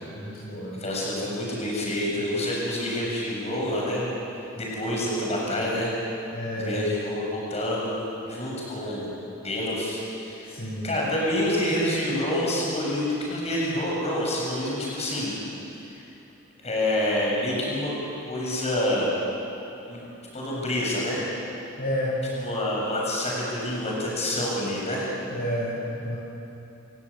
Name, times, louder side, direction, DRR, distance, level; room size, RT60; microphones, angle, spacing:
voice 1, 0.2-0.8 6.3-6.9 10.5-10.9 21.8-22.2 25.3-26.2, equal, 45° left, -6 dB, 5.8 m, -30 dB
voice 2, 0.8-4.0 4.6-5.9 6.6-9.1 9.4-15.3 15.9-16.0 16.6-17.9 18.2-19.1 19.9-20.0 20.3-21.2 22.4-25.1, left 1 dB, 30° left, -4 dB, 7.2 m, -27 dB
29.0 x 16.5 x 8.7 m, 2.9 s
head